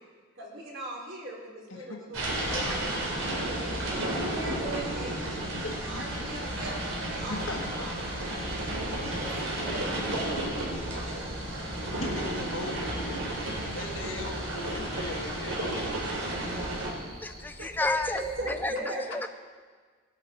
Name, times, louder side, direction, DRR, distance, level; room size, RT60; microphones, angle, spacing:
voice 1, 0.4-7.4 7.8-8.1 8.5-10.4 10.7-10.8 17.6-17.7 18.1-19.3, right 1 dB, 65° right, -3 dB, 3.6 m, -40 dB
voice 2, 1.7-2.2 5.6-6.3 7.3-8.0 12.0-13.3 13.7-16.0 16.4-16.5, left 2 dB, 80° left, 3 dB, 1.5 m, -40 dB
sound 1, 2.1-16.9, right 1 dB, 85° right, 3.6 m, -32 dB
Cricket, 6.1-18.6, equal, 45° right, 2.6 m, -46 dB
voice 3, 17.2-19.3, left 2 dB, 10° left, 8 dB, 0.5 m, -31 dB
18.0 x 11.0 x 4.4 m, 1.5 s
head